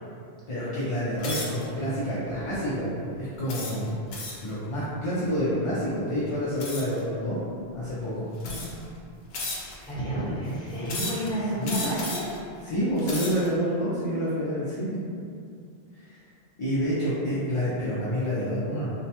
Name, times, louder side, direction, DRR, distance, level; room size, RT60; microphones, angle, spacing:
voice 1, 0.5-4.0 4.4-7.4 7.7-8.3 11.6-11.9 12.6-15.0 15.9-16.2 16.6-18.9, equal, 45° left, -9 dB, 0.4 m, -28 dB
sound 1, 1.2-1.6 2.3-2.5 3.5-4.5 6.6-7.0 7.8-7.9 8.4-8.9 9.3-9.9 10.9-11.3 11.6-12.4 12.9-13.5, left 2 dB, 75° left, 0.8 m, -34 dB
voice 2, 9.8-12.3, right 1 dB, 5° left, -12 dB, 0.8 m, -30 dB
3.0 x 2.1 x 2.8 m, 2.4 s
omnidirectional pair, 1.1 m